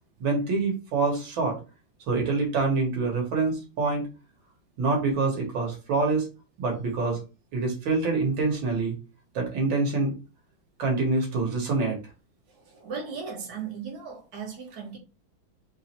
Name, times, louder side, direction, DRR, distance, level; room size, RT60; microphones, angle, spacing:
voice 1, 0.2-1.6 2.1-4.1 4.8-6.3 6.6-7.2 7.5-9.0 9.4-10.1 10.8-12.0, right 3 dB, 85° right, 0 dB, 2.1 m, -26 dB
voice 2, 12.5-15.0, right 5 dB, 60° right, -1 dB, 2.0 m, -37 dB
3.9 x 3.0 x 4.2 m, 0.31 s
omnidirectional pair, 2.1 m